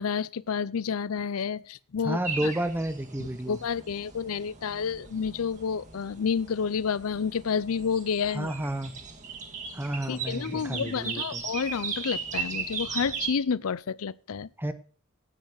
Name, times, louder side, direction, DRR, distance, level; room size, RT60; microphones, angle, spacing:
voice 1, 0.0-2.5 3.2-8.5 10.1-14.5, left 6 dB, 75° left, 0.5 m, -30 dB
voice 2, 2.0-3.6 8.3-8.9 9.7-11.4 14.6-14.7, right 1 dB, 10° right, 0.6 m, -31 dB
sound 1, 2.2-13.3, right 5 dB, 35° right, 1.9 m, -38 dB
9.8 x 8.9 x 6.4 m
head